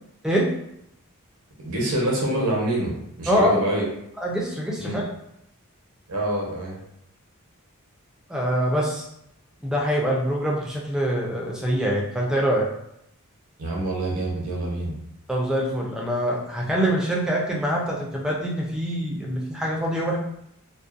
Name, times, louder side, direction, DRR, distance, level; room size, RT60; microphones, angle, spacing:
voice 1, 1.6-2.9 3.2-3.8 4.8-5.0 6.1-6.8 13.6-14.9, right 1 dB, 75° right, -3 dB, 0.8 m, -26 dB
voice 2, 4.2-5.0 8.3-9.1 9.6-12.7 15.3-20.2, equal, 5° right, -3 dB, 0.4 m, -24 dB
2.5 x 2.1 x 2.4 m, 0.77 s
head